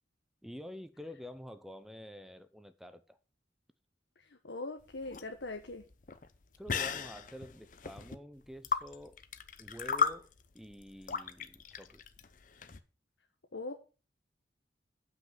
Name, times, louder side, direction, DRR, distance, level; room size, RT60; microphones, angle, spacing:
voice 1, 0.4-3.2 6.6-9.2 9.6-10.3 10.5-12.0, left 1 dB, ahead, 0.6 m, -48 dB
voice 2, 4.3-5.8 13.5-13.7, left 2 dB, 80° left, 1.1 m, -41 dB
sound 1, 4.8-12.8, left 6 dB, 45° left, 0.7 m, -36 dB
7.8 x 6.1 x 7.4 m
head